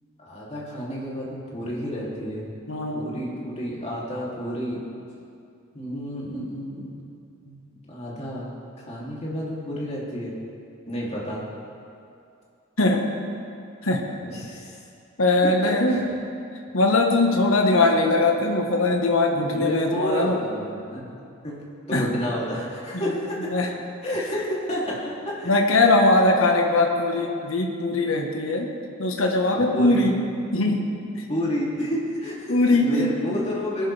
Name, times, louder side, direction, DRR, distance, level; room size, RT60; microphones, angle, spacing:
voice 1, 0.2-2.5 2.9-4.8 5.7-7.0 7.4-8.5 8.9-10.3 10.9-11.4 14.2-14.8 15.4-16.0 19.5-21.1 21.4-21.6 21.9-23.5 24.0-25.0 25.2-25.5 29.5-30.1 31.3-33.9, equal, 30° left, -6 dB, 3.1 m, -30 dB
voice 2, 2.7-3.1 12.8-13.0 13.8-14.0 15.2-16.0 16.7-20.4 21.9-22.2 22.9-23.2 23.4-23.7 25.4-28.7 29.0-30.2 30.5-30.9 32.5-33.1, left 2 dB, 75° left, 2 dB, 1.4 m, -21 dB
20.0 x 11.5 x 3.5 m, 2.5 s
head